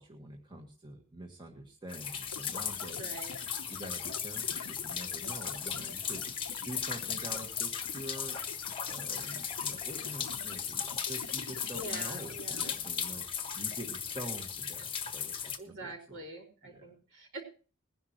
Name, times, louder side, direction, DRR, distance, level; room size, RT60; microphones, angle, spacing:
voice 1, 0.0-3.2 3.7-6.2 6.6-8.4 8.9-16.2 16.6-17.0, right 1 dB, 20° right, 1 dB, 1.7 m, -46 dB
sound 1, 1.9-15.6, left 7 dB, 25° left, 1.3 m, -37 dB
sound 2, 2.3-12.8, left 6 dB, 85° left, 1.0 m, -47 dB
voice 2, 2.9-3.4 11.7-12.8 15.6-17.4, right 2 dB, 60° right, 0 dB, 5.4 m, -45 dB
21.0 x 11.0 x 3.1 m, 0.36 s
head